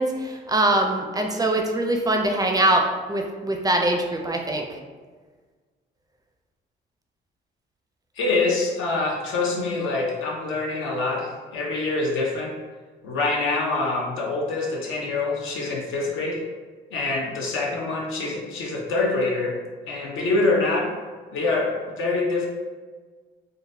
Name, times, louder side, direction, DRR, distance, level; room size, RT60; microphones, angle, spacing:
voice 1, 0.0-2.8 3.1-4.6, right 1 dB, 20° right, 2 dB, 0.4 m, -23 dB
voice 2, 8.2-12.5 13.0-16.4 16.9-19.6 19.9-20.9 21.3-22.5, left 3 dB, 85° left, -2 dB, 0.8 m, -25 dB
3.8 x 2.1 x 2.6 m, 1.4 s
cardioid pair, 90°, 20 cm